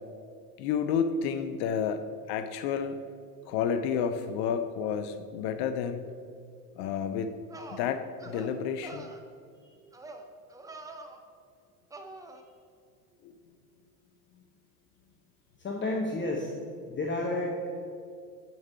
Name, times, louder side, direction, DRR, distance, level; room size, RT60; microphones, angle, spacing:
voice 1, 0.6-3.0 3.5-6.1 6.8-7.4 7.7-9.1 13.2-13.4, left 7 dB, 50° left, 10 dB, 0.6 m, -30 dB
sound 1, 7.0-7.1 7.5-7.8 8.2-8.5 8.8-9.2 9.9-10.2 10.5-11.2 11.9-12.4, right 2 dB, 10° right, 0.5 m, -45 dB
voice 2, 15.6-16.5 16.9-17.7, left 2 dB, 25° left, 0 dB, 0.9 m, -31 dB
7.8 x 5.3 x 4.3 m, 2.4 s
hypercardioid pair, 85°, 49 cm